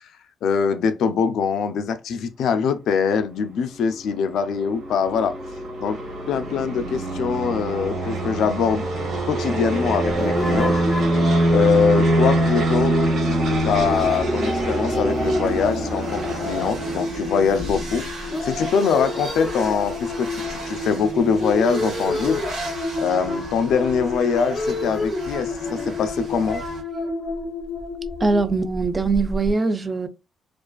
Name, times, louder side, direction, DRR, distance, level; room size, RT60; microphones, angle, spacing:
voice 1, 0.4-5.3 5.8-6.0 6.3-8.9 9.3-10.7 11.1-11.2 11.5-13.0 13.6-22.4 23.0-26.6, left 6 dB, 75° left, 0.3 m, -23 dB
sound 1, 3.7-17.0, right 1 dB, 60° right, 1.0 m, -24 dB
sound 2, 10.0-29.5, left 2 dB, 10° left, 0.8 m, -29 dB
sound 3, 13.3-26.8, right 1 dB, 90° right, 1.3 m, -37 dB
voice 2, 28.2-30.1, right 3 dB, 25° right, 0.4 m, -22 dB
2.4 x 2.3 x 2.3 m
cardioid pair, 90°, 0 cm